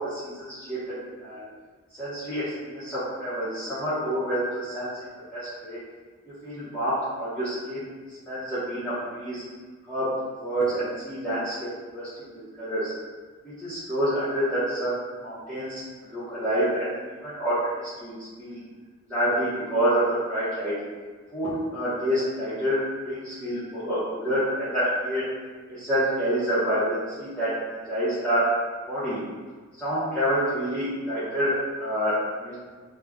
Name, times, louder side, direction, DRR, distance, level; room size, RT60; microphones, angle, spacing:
voice 1, 0.0-1.4 2.0-4.9 5.3-5.8 6.4-7.9 8.3-9.4 9.9-10.1 10.4-12.1 12.6-12.9 13.4-14.9 15.2-18.6 19.1-20.0 20.3-20.7 21.3-22.8 23.0-25.3 25.8-28.4 28.9-29.2 29.8-32.2 32.4-32.6, equal, 5° left, -15 dB, 0.7 m, -28 dB
2.4 x 2.1 x 3.4 m, 1.4 s
head